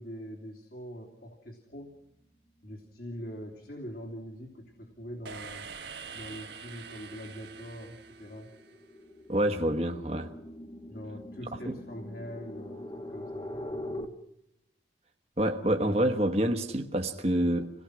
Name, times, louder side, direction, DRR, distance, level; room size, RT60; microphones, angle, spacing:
voice 1, 0.0-1.9 2.6-5.7 6.1-8.5 10.9-13.6, equal, 55° left, 3.0 m, -43 dB
sound 1, 4.4-4.7 5.1-14.1, left 1 dB, 25° left, 1.3 m, -43 dB
sound 2, 5.2-9.1, right 5 dB, 70° right, 1.5 m, -45 dB
voice 2, 9.3-10.3 11.7-11.8 15.4-17.7, right 1 dB, 35° right, 1.2 m, -27 dB
27.0 x 18.0 x 6.2 m
head